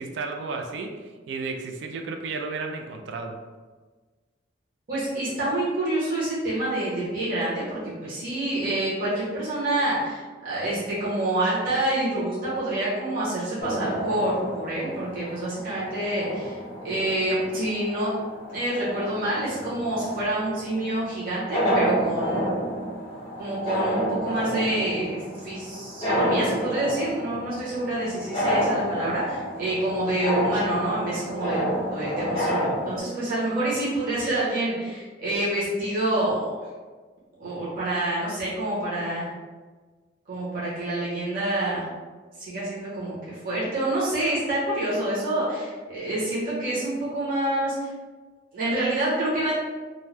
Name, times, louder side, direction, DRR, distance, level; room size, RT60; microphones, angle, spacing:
voice 1, 0.0-3.4, right 4 dB, 65° right, 4 dB, 0.3 m, -33 dB
voice 2, 4.9-16.6 16.8-18.1 18.5-22.5 23.4-36.5 37.4-39.3 40.3-41.9 42.4-47.9 48.5-49.5, right 1 dB, 50° right, -9 dB, 1.0 m, -27 dB
sound 1, 13.6-33.0, equal, 30° left, 0.8 m, -30 dB
2.6 x 2.2 x 3.3 m, 1.4 s
head